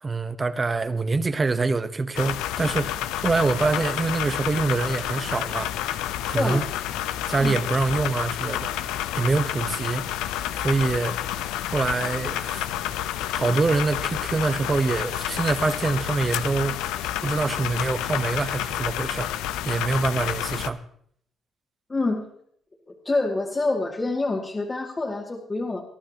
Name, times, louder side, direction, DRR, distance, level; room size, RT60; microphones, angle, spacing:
voice 1, 0.0-2.9 3.2-5.7 6.3-6.7 7.3-8.8 9.1-10.1 10.6-11.2 11.7-12.7 13.3-16.8 17.2-19.3 19.6-20.8, right 3 dB, 30° right, 0.9 m, -25 dB
sound 1, 2.1-20.7, left 12 dB, 90° left, 0.6 m, -29 dB
voice 2, 6.3-6.6 7.4-7.6 21.9-22.3 22.9-25.8, left 2 dB, 25° left, 2.2 m, -26 dB
23.0 x 12.0 x 2.9 m
cardioid pair, 75°, 0 cm